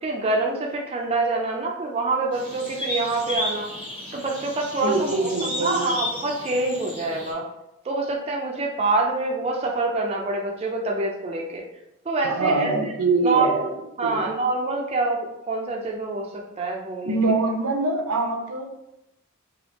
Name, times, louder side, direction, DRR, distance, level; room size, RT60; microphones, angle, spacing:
voice 1, 0.0-3.7 4.1-7.5 7.9-11.6 12.1-12.7 13.2-13.5 14.0-17.2, right 3 dB, 30° right, -1 dB, 0.4 m, -26 dB
sound 1, 2.3-7.3, left 1 dB, 25° left, 1.1 m, -33 dB
voice 2, 4.8-5.9 12.2-13.7 14.0-14.2 17.0-18.6, right 3 dB, 85° right, 3 dB, 0.5 m, -24 dB
3.2 x 2.3 x 2.9 m, 0.87 s
head